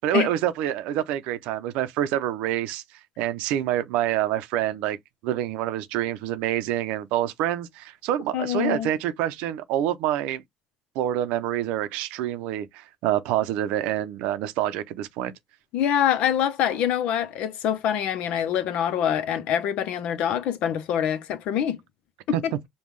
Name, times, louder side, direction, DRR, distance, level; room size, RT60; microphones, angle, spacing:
voice 1, 0.0-2.8 3.2-5.0 5.2-10.4 11.0-15.3 22.3-22.4, right 12 dB, 80° right, 0.6 m, -27 dB
voice 2, 8.3-8.9 15.7-21.8 22.3-22.4, left 9 dB, 70° left, 0.7 m, -25 dB
5.3 x 2.3 x 3.1 m
cardioid pair, 95°, 2 cm